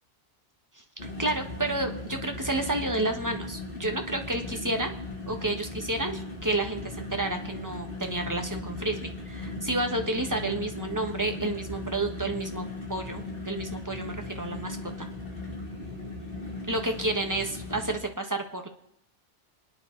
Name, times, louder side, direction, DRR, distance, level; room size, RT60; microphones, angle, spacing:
sound 1, 1.0-18.0, left 2 dB, 60° left, 2.9 m, -38 dB
voice 1, 1.2-4.9 5.3-15.1 16.7-18.7, right 2 dB, 20° right, 4 dB, 1.6 m, -30 dB
27.5 x 9.9 x 4.0 m, 0.79 s
omnidirectional pair, 1.1 m